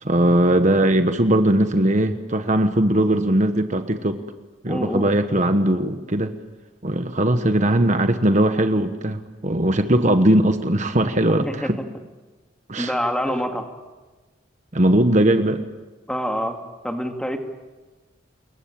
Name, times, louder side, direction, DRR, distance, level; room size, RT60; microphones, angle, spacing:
voice 1, 0.0-4.2 4.6-6.3 6.8-11.8 12.7-12.9 14.7-15.6, right 1 dB, 40° right, 8 dB, 1.2 m, -19 dB
voice 2, 4.7-5.1 11.4-11.7 12.8-13.7 16.1-17.4, equal, 5° left, 4 dB, 2.3 m, -26 dB
28.0 x 22.5 x 8.8 m, 1.2 s
head